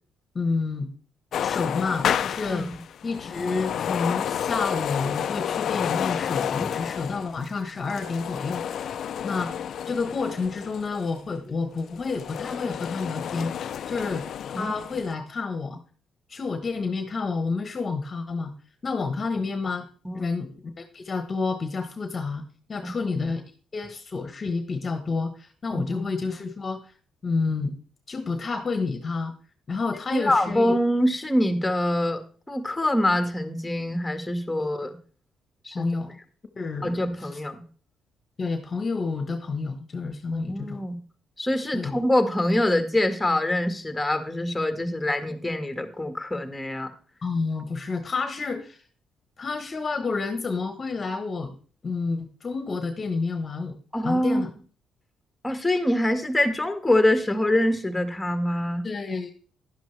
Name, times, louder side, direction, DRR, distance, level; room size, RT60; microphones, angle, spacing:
voice 1, 0.3-0.9 1.4-2.7 3.0-9.5 9.9-13.5 13.9-14.2 14.5-15.8 16.3-18.5 18.8-19.9 20.1-22.4 22.7-23.4 23.7-26.9 27.2-27.8 28.1-29.3 29.7-30.7 35.7-36.1 36.5-37.4 38.4-40.8 41.7-42.0 47.2-48.8 49.4-51.6 51.8-53.8 54.0-54.5 58.8-59.3, left 4 dB, 40° left, 7 dB, 1.2 m, -29 dB
sound 1, 1.3-11.2 11.7-15.1, left 9 dB, 65° left, 0.5 m, -30 dB
voice 2, 25.7-26.1 30.1-32.2 32.5-35.0 35.6-35.9 36.8-37.6 40.3-41.0 41.4-46.9 53.9-54.4 55.4-58.8, left 1 dB, 10° left, 7 dB, 1.8 m, -25 dB
11.5 x 10.5 x 3.4 m, 0.41 s
cardioid pair, 90°, 0 cm